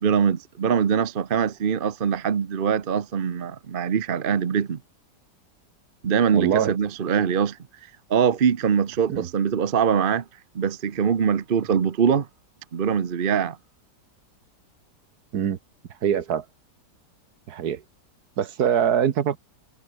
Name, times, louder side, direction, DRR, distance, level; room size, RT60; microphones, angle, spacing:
voice 1, 0.0-4.8 6.0-7.6 8.1-10.2 10.5-12.3 12.7-13.6, right 7 dB, 40° right, 0.9 m, -23 dB
voice 2, 6.3-6.7 9.1-9.3 15.3-15.6 16.0-16.4 17.5-17.8 18.4-19.4, right 8 dB, 65° right, 1.5 m, -23 dB
omnidirectional pair, 1.9 m